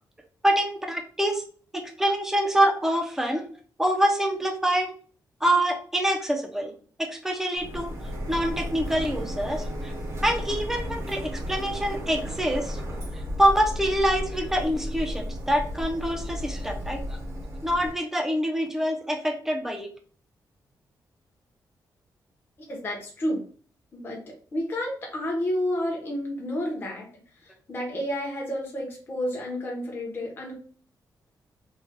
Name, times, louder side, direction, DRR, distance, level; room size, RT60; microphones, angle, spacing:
voice 1, 0.4-1.4 1.7-3.4 3.8-4.9 5.4-6.7 7.0-7.9 8.3-9.9 10.2-12.8 13.1-17.2 17.6-19.9, right 1 dB, 5° right, 3 dB, 0.5 m, -25 dB
Printer, 7.6-17.9, equal, 40° right, 0.8 m, -34 dB
voice 2, 22.7-23.4 23.9-24.2 24.5-27.1 27.7-30.5, left 1 dB, 30° left, -2 dB, 0.8 m, -30 dB
3.1 x 2.2 x 3.5 m, 0.43 s
wide cardioid pair, 180°, 7 cm